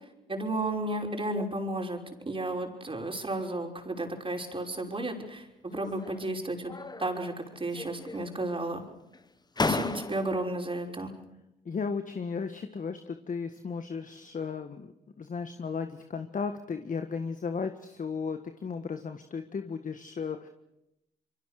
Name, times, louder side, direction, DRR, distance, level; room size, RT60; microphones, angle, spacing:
voice 1, 0.3-2.0 2.3-6.7 7.0-8.8 9.6-11.1, right 2 dB, 30° right, 2 dB, 5.7 m, -33 dB
sound 1, 5.7-6.3 6.7-7.4 7.7-8.5 9.1-9.2 9.6-10.5, left 3 dB, 20° left, 1.4 m, -34 dB
voice 2, 11.6-14.9 15.2-20.5, left 5 dB, 45° left, 8 dB, 1.7 m, -35 dB
26.5 x 23.5 x 6.7 m, 0.89 s
hypercardioid pair, 50°, 19 cm